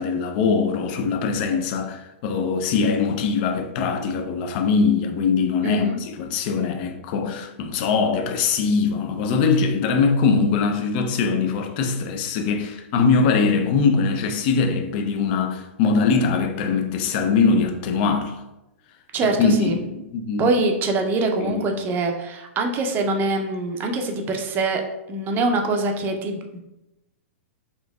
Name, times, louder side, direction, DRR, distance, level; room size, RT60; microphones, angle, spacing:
voice 1, 0.0-18.4 19.2-20.5 21.4-21.6, left 5 dB, 50° left, 0.5 m, -22 dB
voice 2, 5.6-6.0 19.1-19.8 20.4-24.8 25.1-26.6, right 3 dB, 30° right, 0.5 m, -24 dB
4.4 x 2.6 x 2.3 m
hypercardioid pair, 125°, 7 cm